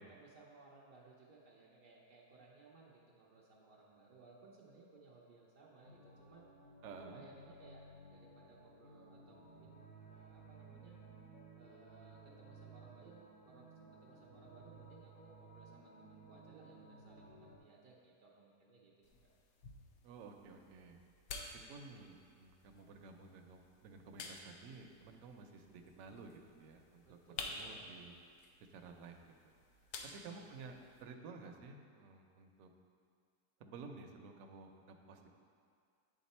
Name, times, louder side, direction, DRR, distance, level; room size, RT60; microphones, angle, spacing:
voice 1, 0.1-6.4 7.0-11.0 11.5-19.1 27.0-28.0 30.0-30.5, right 3 dB, 85° right, -4 dB, 0.4 m, -61 dB
sound 1, 5.8-17.6, right 3 dB, 60° left, 1.1 m, -58 dB
voice 2, 6.8-7.2 20.0-21.0 21.4-27.2 27.5-28.2 28.7-29.5 30.0-32.7 33.6-35.3, right 4 dB, 70° right, 4 dB, 0.8 m, -53 dB
sound 2, 19.0-31.0, left 4 dB, 85° left, 1.2 m, -52 dB
8.7 x 3.6 x 4.2 m, 2.3 s
omnidirectional pair, 1.8 m